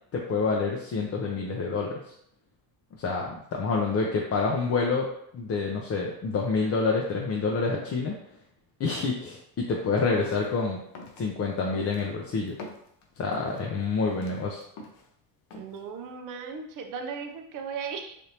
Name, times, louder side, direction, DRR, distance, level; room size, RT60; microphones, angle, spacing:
voice 1, 0.1-1.9 3.0-5.1 5.3-8.2 8.8-10.8 11.2-12.6 13.2-14.6, left 4 dB, 35° left, -1 dB, 0.5 m, -27 dB
sound 1, 10.2-10.5 10.9-11.2 11.7-12.1 12.5-13.6 14.0-15.1 15.5-15.8, left 2 dB, 80° left, 0.7 m, -43 dB
voice 2, 15.6-18.2, right 6 dB, 45° right, 4 dB, 0.6 m, -36 dB
3.4 x 2.6 x 2.8 m, 0.72 s
supercardioid pair, 95°, 45 cm